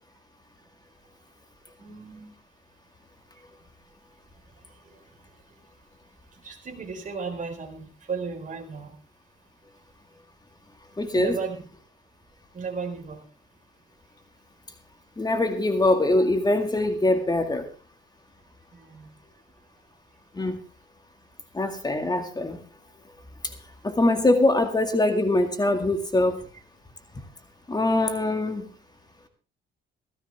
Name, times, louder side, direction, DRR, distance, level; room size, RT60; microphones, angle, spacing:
voice 1, 1.8-2.3 4.8-5.0 6.4-9.0 11.1-11.6 12.5-13.2 18.7-19.1, right 5 dB, 40° right, 2 dB, 4.2 m, -35 dB
voice 2, 11.0-11.4 15.2-17.7 20.3-20.6 21.5-22.6 23.4-23.5 23.8-26.4 27.7-28.7, left 2 dB, 20° left, 6 dB, 2.1 m, -23 dB
16.5 x 14.5 x 3.5 m, 0.37 s
cardioid pair, 90°, 20 cm